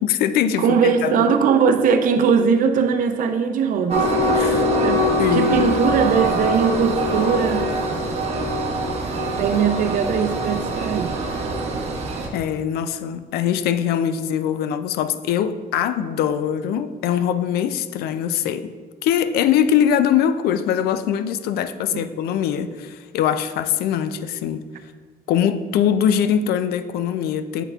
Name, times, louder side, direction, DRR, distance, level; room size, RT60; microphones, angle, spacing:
voice 1, 0.0-1.3 4.3-4.7 5.2-5.7 12.3-18.7 19.0-24.7 25.3-27.6, left 9 dB, 70° left, 11 dB, 0.4 m, -22 dB
voice 2, 0.6-4.1 4.4-7.7 9.4-11.2 21.9-22.0, right 6 dB, 55° right, 7 dB, 0.5 m, -20 dB
Train, 3.9-12.3, equal, 40° right, 0.9 m, -23 dB
8.2 x 5.4 x 2.4 m, 1.5 s
cardioid pair, 130°, 17 cm